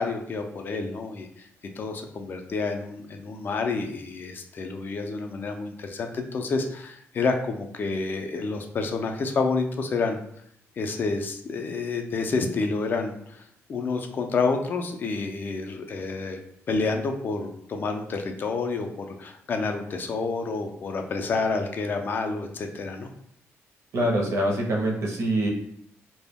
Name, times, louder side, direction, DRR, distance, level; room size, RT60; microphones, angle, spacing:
voice 1, 0.0-1.5 1.8-10.2 10.8-13.4 13.7-16.4 16.7-23.1, left 4 dB, 40° left, 5 dB, 0.3 m, -29 dB
voice 2, 23.9-25.5, right 1 dB, 60° right, -1 dB, 0.5 m, -24 dB
2.1 x 2.0 x 3.4 m, 0.68 s
cardioid pair, 145°, 5 cm